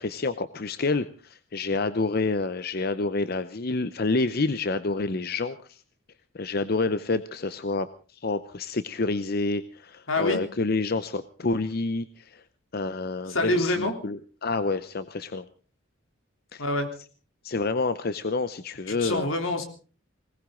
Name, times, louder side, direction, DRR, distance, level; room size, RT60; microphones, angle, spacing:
voice 1, 0.0-5.8 6.3-7.9 8.1-12.4 12.7-15.4 16.5-16.6 17.4-19.3, left 3 dB, 50° left, 13 dB, 0.7 m, -28 dB
voice 2, 10.1-10.4 13.3-13.9 16.6-16.9 19.0-19.6, left 2 dB, 85° left, 5 dB, 3.4 m, -25 dB
20.5 x 19.0 x 3.8 m, 0.38 s
head